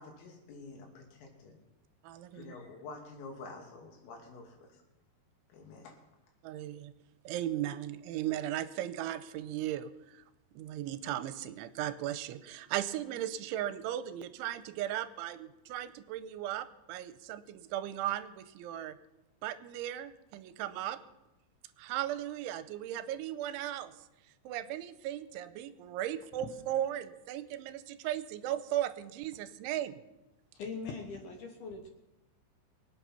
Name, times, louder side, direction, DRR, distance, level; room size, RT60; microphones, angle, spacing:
voice 1, 0.0-1.6 2.3-4.8 5.5-6.0, left 3 dB, 90° left, 0 dB, 5.2 m, -48 dB
voice 2, 2.0-2.5 6.4-6.9 7.3-10.2 10.6-19.0 19.4-21.0 21.8-23.9 24.5-30.0, right 12 dB, 80° right, 12 dB, 2.9 m, -37 dB
voice 3, 30.5-31.9, left 4 dB, 70° left, 4 dB, 2.4 m, -41 dB
24.0 x 8.5 x 5.8 m, 0.97 s
omnidirectional pair, 5.7 m